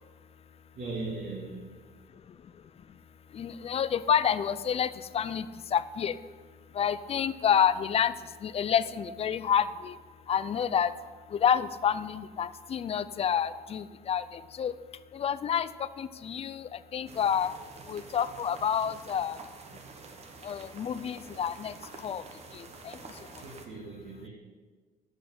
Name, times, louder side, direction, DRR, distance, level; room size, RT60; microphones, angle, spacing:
voice 1, 0.8-1.9 23.4-24.3, right 3 dB, 60° right, -4 dB, 2.2 m, -39 dB
voice 2, 3.3-5.5 5.7-6.2 6.7-8.1 8.4-10.0 10.3-10.9 11.3-14.7 15.1-15.7 16.0-17.5 17.9-19.4 20.4-21.7 22.0-22.2 22.5-23.0, left 8 dB, 35° left, 15 dB, 0.4 m, -28 dB
sound 1, 17.1-23.7, right 4 dB, 40° right, 1.1 m, -48 dB
7.9 x 6.4 x 7.8 m, 1.5 s
cardioid pair, 110°, 17 cm